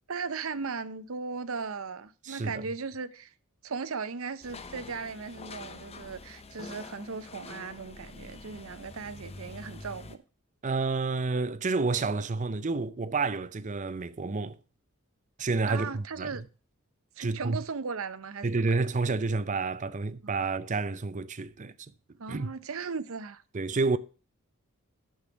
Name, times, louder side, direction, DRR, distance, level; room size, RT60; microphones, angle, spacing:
voice 1, 0.1-3.3 3.6-10.2 15.7-16.4 17.2-18.5 18.8-18.9 20.2-20.3 22.2-23.4, right 5 dB, 75° right, 0.7 m, -37 dB
voice 2, 2.2-2.6 10.6-14.6 15.4-16.5 17.2-17.6 18.4-21.9 22.3-22.5 23.5-24.0, right 3 dB, 35° right, 0.6 m, -29 dB
sound 1, 4.4-10.2, left 3 dB, 30° left, 0.7 m, -46 dB
10.5 x 6.1 x 5.0 m
head